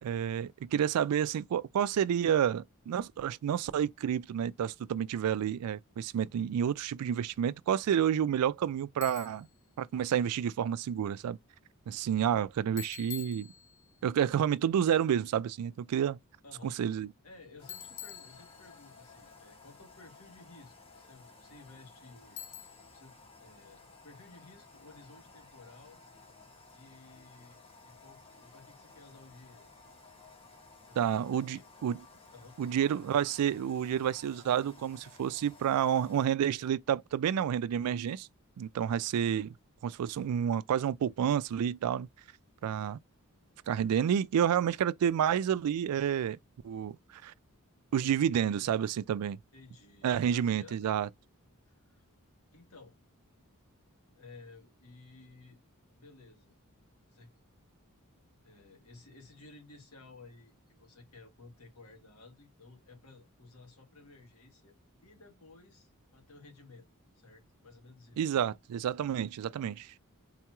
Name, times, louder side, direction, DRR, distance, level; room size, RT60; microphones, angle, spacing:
voice 1, 0.0-9.5 9.8-11.4 11.9-13.5 14.0-16.2 16.6-17.1 31.0-32.0 32.6-38.3 38.6-39.5 39.8-42.1 42.6-43.0 43.7-46.4 46.6-47.3 47.9-49.4 50.0-51.1 68.2-69.9, right 9 dB, 85° right, 0.3 m, -29 dB
Bicycle, 9.0-9.5 12.8-14.0 17.7-18.9 22.4-23.0, left 10 dB, 55° left, 0.5 m, -46 dB
voice 2, 16.4-16.8 17.2-22.4 22.9-26.0 26.7-29.7 30.9-31.7 32.3-33.0 48.3-48.8 49.5-50.9 51.7-52.0 52.5-53.0 54.1-55.6 55.9-56.6 57.1-57.3 58.4-64.7 65.0-68.3, left 3 dB, 80° left, 1.4 m, -55 dB
sound 1, 17.6-36.3, left 3 dB, 25° left, 0.9 m, -56 dB
3.8 x 2.3 x 2.9 m
head